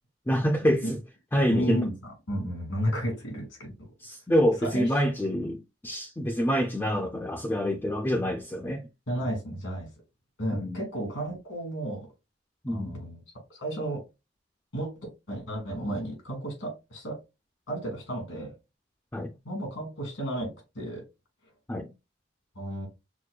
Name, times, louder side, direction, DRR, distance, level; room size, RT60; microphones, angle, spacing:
voice 1, 0.3-1.0 1.3-1.8 4.0-8.8 10.5-10.8 12.6-13.0 19.1-19.3 21.7-21.9, equal, 10° left, 0.4 m, -26 dB
voice 2, 1.5-3.9 4.6-4.9 9.1-9.9 10.4-12.1 12.7-13.2 13.5-14.0 14.7-14.9 15.3-17.2 17.7-18.5 19.4-20.5 20.7-21.0 22.6-22.9, right 1 dB, 90° left, 2.2 m, -32 dB
6.2 x 2.1 x 2.3 m
head